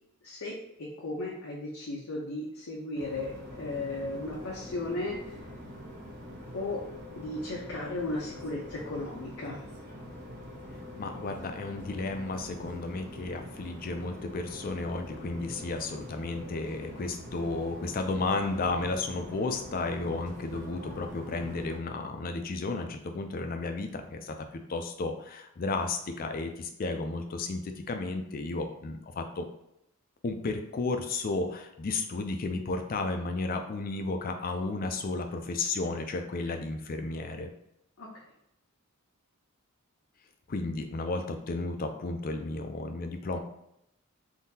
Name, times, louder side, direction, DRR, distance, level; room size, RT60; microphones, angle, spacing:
voice 1, 0.2-5.4 6.5-6.8 7.1-9.6 36.5-36.7 38.0-38.1, left 2 dB, 80° left, -4 dB, 0.7 m, -35 dB
sound 1, 2.9-21.8, left 1 dB, 50° right, 0.9 m, -44 dB
voice 2, 11.0-29.5 30.2-37.5 40.5-43.4, left 3 dB, 45° left, 6 dB, 0.4 m, -33 dB
3.7 x 2.7 x 2.7 m, 0.80 s
head